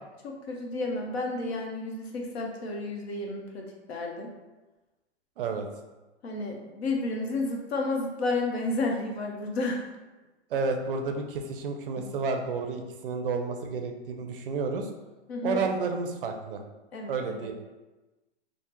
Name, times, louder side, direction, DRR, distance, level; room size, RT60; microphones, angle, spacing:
voice 1, 0.2-4.3 6.2-9.9 12.0-12.1 15.3-15.7 16.9-17.5, left 2 dB, 65° left, 1 dB, 0.8 m, -31 dB
voice 2, 5.4-5.7 10.5-14.9 15.4-16.6 17.1-17.5, right 4 dB, 50° right, 4 dB, 0.4 m, -31 dB
3.3 x 2.1 x 2.9 m, 1.1 s
hypercardioid pair, 140°, 34 cm